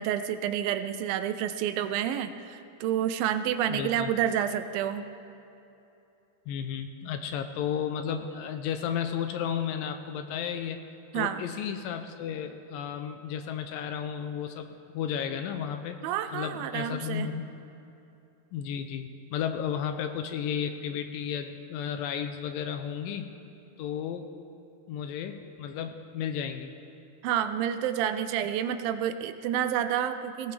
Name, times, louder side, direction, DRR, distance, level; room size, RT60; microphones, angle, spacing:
voice 1, 0.0-5.0 11.1-11.4 16.0-17.3 27.2-30.5, right 10 dB, 80° right, 9 dB, 2.3 m, -29 dB
voice 2, 3.7-4.1 6.5-10.8 11.1-16.0 16.3-17.5 18.5-23.3 23.8-24.3 24.9-26.7, left 8 dB, 80° left, 7 dB, 2.2 m, -33 dB
18.5 x 18.0 x 3.3 m, 2.8 s
omnidirectional pair, 4.3 m